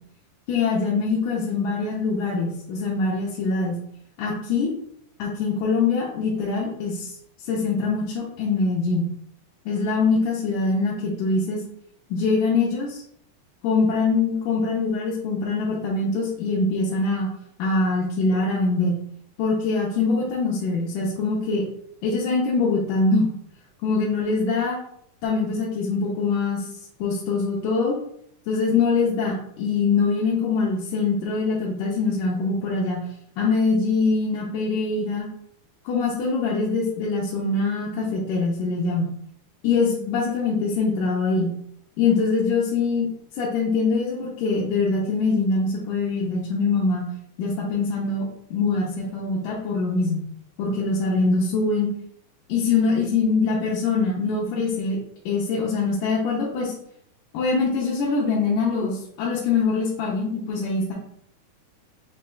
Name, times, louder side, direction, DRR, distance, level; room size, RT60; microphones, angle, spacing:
voice 1, 0.5-3.8 4.2-4.7 5.2-7.1 7.5-9.1 9.7-11.6 12.1-13.0 13.6-17.3 17.6-19.0 19.4-21.6 22.0-23.3 23.8-24.8 25.2-26.7 27.0-28.0 28.5-33.0 33.4-35.3 35.9-39.1 39.6-41.5 42.0-43.1 43.4-47.0 47.4-50.2 50.6-51.9 52.5-55.0 55.3-56.7 57.3-60.9, left 4 dB, 90° left, -5 dB, 2.3 m, -23 dB
6.7 x 3.2 x 2.3 m, 0.70 s
omnidirectional pair, 3.6 m